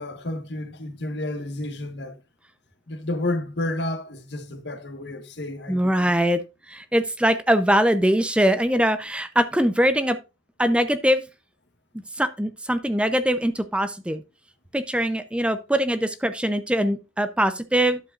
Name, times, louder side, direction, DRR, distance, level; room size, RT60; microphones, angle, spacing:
voice 1, 0.0-2.2 2.9-6.1, left 1 dB, 65° left, 1.4 m, -31 dB
voice 2, 5.7-6.4 6.7-10.2 10.6-11.2 12.2-14.2 14.7-18.0, equal, 5° right, 0.6 m, -22 dB
11.5 x 7.5 x 2.5 m
head